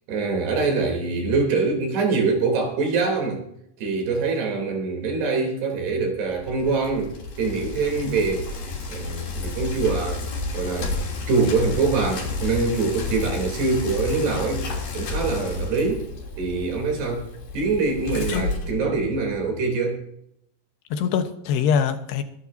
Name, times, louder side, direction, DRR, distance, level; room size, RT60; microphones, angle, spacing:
voice 1, 0.1-3.4 3.8-8.6 8.9-10.2 10.5-11.0 11.3-14.7 14.9-16.1 16.4-17.3 17.5-20.0, right 4 dB, 75° right, 5.4 m, -24 dB
Bicycle, 6.3-19.4, left 3 dB, 60° left, 4.7 m, -31 dB
voice 2, 18.3-18.8 20.9-22.2, left 7 dB, 80° left, 3.2 m, -24 dB
23.5 x 11.5 x 2.7 m
omnidirectional pair, 4.7 m